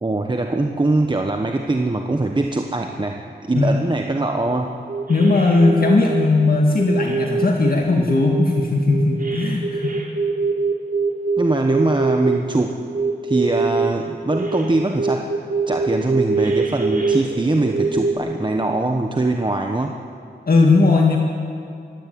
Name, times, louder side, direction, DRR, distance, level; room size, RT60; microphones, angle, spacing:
voice 1, 0.0-4.7 11.4-12.8 13.2-15.3 15.7-19.9, right 2 dB, 25° right, 3 dB, 1.2 m, -22 dB
sound 1, 4.5-4.6 4.9-6.3 6.8-7.7 8.1-12.4 12.9-13.9 14.3-14.7 15.0-18.1, right 4 dB, 50° right, 3.6 m, -23 dB
voice 2, 5.1-10.0 20.5-21.2, left 3 dB, 55° left, 0 dB, 2.0 m, -17 dB
23.5 x 16.0 x 9.4 m, 2.5 s
wide cardioid pair, 105°, 19 cm